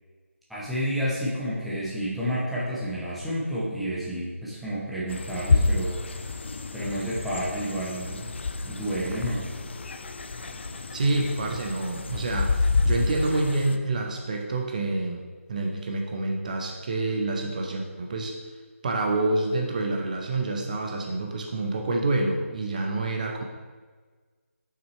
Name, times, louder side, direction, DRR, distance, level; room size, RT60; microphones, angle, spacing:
voice 1, 0.5-6.0 6.7-8.3 8.6-9.5, equal, ahead, -10 dB, 0.9 m, -30 dB
sound 1, 5.1-13.8, left 3 dB, 50° left, 0.5 m, -28 dB
voice 2, 10.9-15.2 15.5-18.3 18.8-23.4, right 2 dB, 35° right, 1 dB, 0.7 m, -27 dB
7.2 x 5.8 x 3.2 m, 1.4 s
figure-of-eight pair, 165°, 8 cm